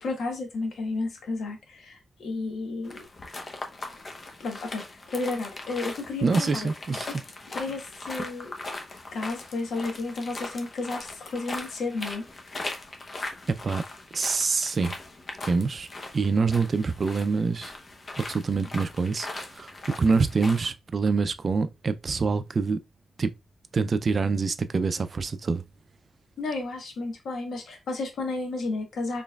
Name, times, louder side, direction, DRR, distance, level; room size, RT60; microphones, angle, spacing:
voice 1, 0.0-3.0 4.4-6.7 7.5-8.5 9.1-12.2 26.4-29.2, left 3 dB, 80° left, 1.1 m, -32 dB
sound 1, 2.8-20.7, left 2 dB, 40° left, 0.8 m, -39 dB
voice 2, 6.2-7.1 13.5-13.8 14.1-14.9 15.4-15.9 16.1-17.7 18.2-19.7 20.0-22.8 23.2-23.3 23.7-25.6, right 4 dB, 45° right, 0.4 m, -25 dB
4.3 x 3.2 x 2.3 m
wide cardioid pair, 110°, 0 cm